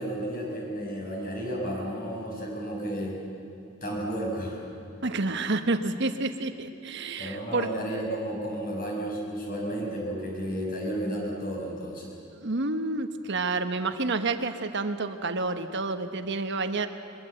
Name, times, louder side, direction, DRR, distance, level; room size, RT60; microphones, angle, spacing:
voice 1, 0.0-3.2 3.8-4.6 7.2-12.1, right 1 dB, 45° left, -1 dB, 6.2 m, -32 dB
voice 2, 5.0-7.7 12.3-16.9, right 3 dB, 60° right, 8 dB, 1.3 m, -29 dB
22.0 x 22.0 x 8.0 m, 2.6 s
head